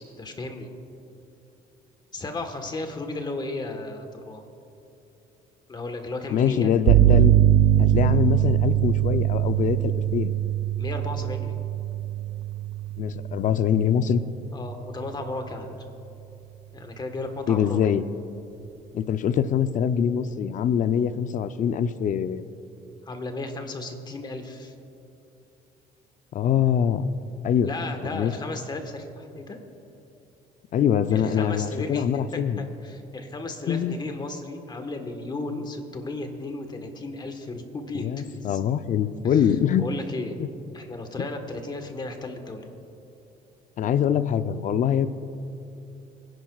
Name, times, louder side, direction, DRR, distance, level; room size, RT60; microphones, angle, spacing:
voice 1, 0.2-0.7 2.1-4.4 5.7-6.7 10.8-11.6 14.5-15.7 16.7-17.8 23.0-24.7 27.6-29.6 31.1-32.1 32.6-38.6 39.2-39.5 39.8-40.4 40.7-42.7, left 2 dB, 25° left, 5 dB, 1.3 m, -34 dB
voice 2, 6.3-7.4 7.8-10.3 13.0-14.2 17.5-18.0 18.9-22.5 26.3-27.1 27.4-27.7 28.1-28.3 30.7-32.6 33.7-33.9 37.9-39.8 40.4-40.5 43.8-45.1, left 8 dB, 50° left, 12 dB, 0.5 m, -24 dB
sound 1, 6.9-14.6, right 13 dB, 85° right, 0.5 m, -22 dB
25.0 x 10.5 x 2.4 m, 2.8 s
cardioid pair, 110°, 17 cm